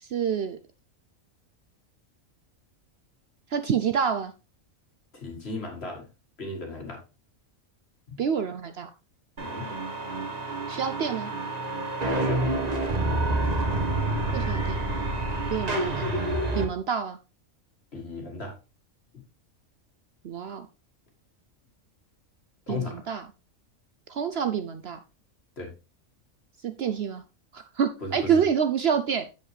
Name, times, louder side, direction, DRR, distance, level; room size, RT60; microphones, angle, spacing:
voice 1, 0.0-0.6 3.5-4.3 8.2-8.9 10.7-11.3 14.3-14.8 15.5-16.1 16.5-17.2 20.2-20.7 22.7-23.2 24.1-25.0 26.6-27.2 27.5-29.3, right 7 dB, 60° right, 9 dB, 0.8 m, -27 dB
voice 2, 5.1-6.1 6.4-7.0 8.1-8.2 9.4-9.7 12.1-12.4 17.9-18.6 19.1-19.2 22.7-23.0 25.6-25.7 28.0-28.4, left 2 dB, 50° left, 2 dB, 2.2 m, -36 dB
sound 1, 9.4-16.6, right 2 dB, 30° right, 1.3 m, -28 dB
7.5 x 7.4 x 3.3 m, 0.28 s
omnidirectional pair, 1.4 m